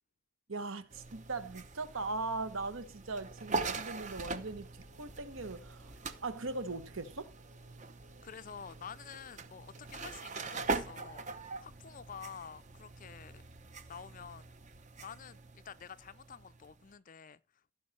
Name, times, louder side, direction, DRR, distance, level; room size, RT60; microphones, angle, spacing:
voice 1, 0.5-4.7 5.0-5.9 6.2-7.3, right 3 dB, 65° right, 1.1 m, -39 dB
sound 1, 0.9-16.9, right 3 dB, 35° right, 0.8 m, -42 dB
voice 2, 8.2-13.4 13.9-14.5 15.0-17.7, left 7 dB, 35° left, 0.4 m, -49 dB
15.5 x 5.4 x 4.2 m
head